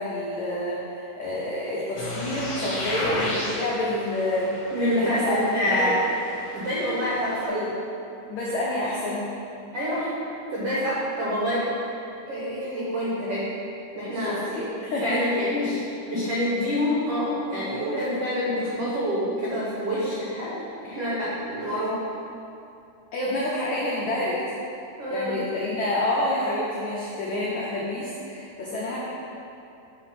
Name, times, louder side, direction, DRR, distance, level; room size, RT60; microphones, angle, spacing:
voice 1, 0.0-5.4 5.6-6.0 7.5-7.7 8.3-9.3 14.1-15.2 23.1-24.4 25.1-29.0, left 1 dB, 85° left, -7 dB, 1.6 m, -28 dB
sound 1, 2.0-7.5, left 1 dB, 60° left, 2.2 m, -34 dB
voice 2, 4.7-6.0 6.5-7.5 9.7-10.1 10.5-11.6 12.3-13.5 13.9-14.4 15.0-20.5 20.8-22.0 25.0-25.4, equal, 85° right, -8 dB, 1.3 m, -26 dB
8.0 x 3.9 x 5.8 m, 2.7 s
omnidirectional pair, 4.7 m